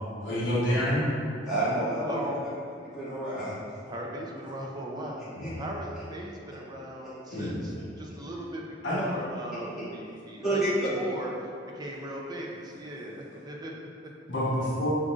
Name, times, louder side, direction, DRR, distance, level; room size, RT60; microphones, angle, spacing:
voice 1, 0.2-1.0 5.3-5.6 7.3-7.6 8.8-9.1 14.3-14.9, equal, 70° left, -8 dB, 1.0 m, -27 dB
voice 2, 1.5-2.3 2.8-3.5 7.3-7.4 10.4-10.9, right 1 dB, 5° right, -15 dB, 1.4 m, -28 dB
voice 3, 2.1-2.4 3.9-5.3 5.6-10.6 10.9-13.9, right 1 dB, 20° right, -2 dB, 0.5 m, -38 dB
5.1 x 3.7 x 2.4 m, 2.5 s
head